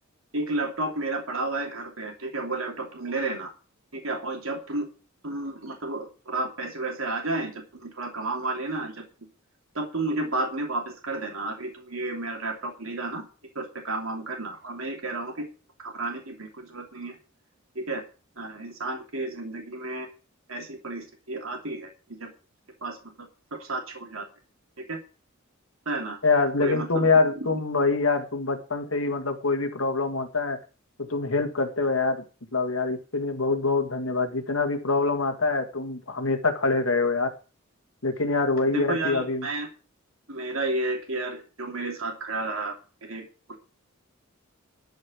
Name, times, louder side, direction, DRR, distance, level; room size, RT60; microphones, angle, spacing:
voice 1, 0.3-3.5 3.9-4.9 5.2-9.0 9.7-13.2 13.5-15.5 15.8-17.2 17.7-18.0 18.4-20.1 20.5-21.9 22.2-22.3 22.8-24.2 24.8-25.0 25.8-26.2 26.6-27.1 27.4-27.6 38.7-39.7 40.3-42.8 43.0-43.6, right 2 dB, 85° right, 2 dB, 2.9 m, -32 dB
voice 2, 26.2-30.6 31.0-32.2 32.5-37.3 38.0-39.5, left 3 dB, 75° left, 6 dB, 2.1 m, -25 dB
13.0 x 5.5 x 8.5 m, 0.35 s
head